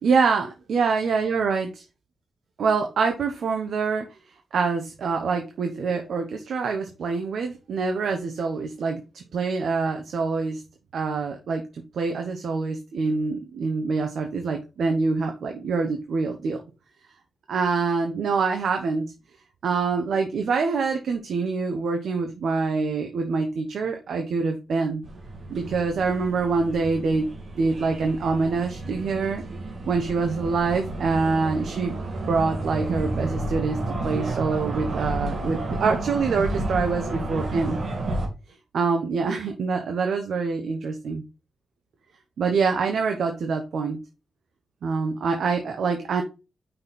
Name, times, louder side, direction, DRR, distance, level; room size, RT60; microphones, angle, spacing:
voice 1, 0.0-1.8 2.6-4.0 4.5-10.6 10.9-11.6 11.9-16.6 17.5-19.1 19.6-25.0 25.5-27.2 27.6-29.4 29.9-31.9 32.3-33.8 34.0-37.8 38.7-41.2 42.4-44.0 44.8-46.2, right 4 dB, 75° right, 4 dB, 0.9 m, -25 dB
sound 1, 25.0-38.3, right 2 dB, 55° right, 2.0 m, -31 dB
5.5 x 4.3 x 4.1 m, 0.29 s
cardioid pair, 100°, 0 cm